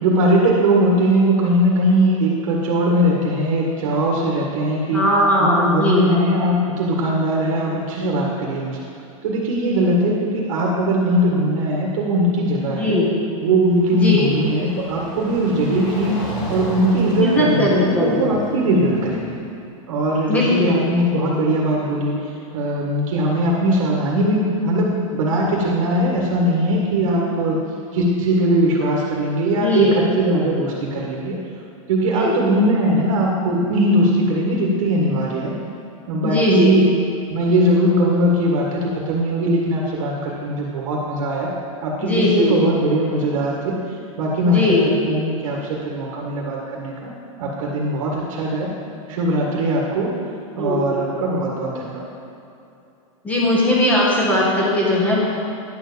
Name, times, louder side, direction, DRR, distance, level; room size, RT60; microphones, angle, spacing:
voice 1, 0.0-5.0 5.4-8.8 9.2-13.0 13.4-19.4 19.9-27.6 27.9-31.4 31.9-35.5 36.1-36.9 37.3-41.5 41.8-43.8 44.2-47.1 47.4-48.7 49.1-50.1 50.6-52.0, right 1 dB, 60° right, -2 dB, 1.7 m, -20 dB
voice 2, 4.9-6.1 12.7-13.1 13.9-14.3 17.2-18.3 20.3-20.8 29.4-29.9 32.1-32.4 36.2-36.8 42.0-42.6 44.4-44.9 50.5-50.9 53.2-55.2, left 1 dB, 10° left, -5 dB, 1.7 m, -19 dB
sound 1, 13.4-19.5, equal, 25° left, 2.4 m, -33 dB
10.5 x 4.7 x 6.9 m, 2.7 s
supercardioid pair, 165°, 18 cm